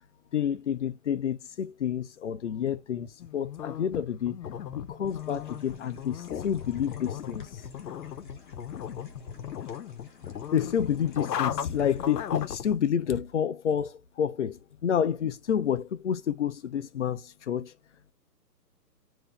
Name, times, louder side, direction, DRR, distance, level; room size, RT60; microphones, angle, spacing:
voice 1, 0.3-4.4 4.7-7.6 9.4-9.7 10.5-17.7, left 8 dB, 50° left, 0.5 m, -29 dB
sound 1, 3.2-12.8, left 9 dB, 75° left, 0.8 m, -37 dB
sound 2, 5.1-12.5, left 4 dB, 30° left, 0.9 m, -53 dB
3.3 x 2.7 x 3.7 m
hypercardioid pair, 160°, 49 cm